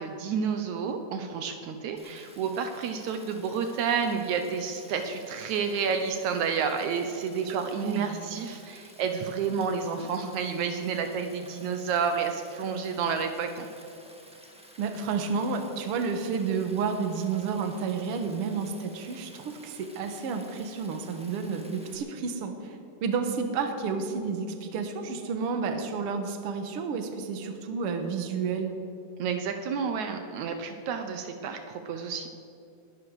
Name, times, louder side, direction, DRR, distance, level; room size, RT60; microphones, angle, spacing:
voice 1, 0.0-13.7 29.2-32.3, right 6 dB, 75° right, 6 dB, 2.3 m, -30 dB
Stream, 2.0-22.0, equal, 5° right, 0.8 m, -53 dB
voice 2, 7.8-8.1 14.8-28.7, right 5 dB, 55° right, 6 dB, 2.0 m, -31 dB
20.5 x 12.5 x 4.9 m, 2.7 s
omnidirectional pair, 3.5 m